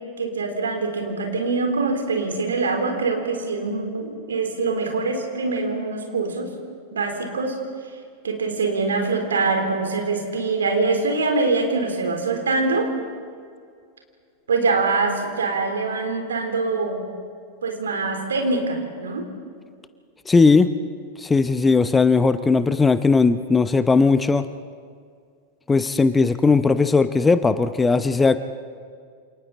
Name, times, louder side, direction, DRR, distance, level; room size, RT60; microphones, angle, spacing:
voice 1, 0.2-6.5 6.9-7.6 8.2-12.9 14.5-17.0 17.6-19.3, right 3 dB, 70° right, 3 dB, 4.0 m, -24 dB
voice 2, 20.3-20.7 21.2-24.5 25.7-28.4, left 4 dB, 15° left, 12 dB, 0.8 m, -18 dB
28.5 x 27.5 x 4.2 m, 2.2 s
figure-of-eight pair, 90°, 0 cm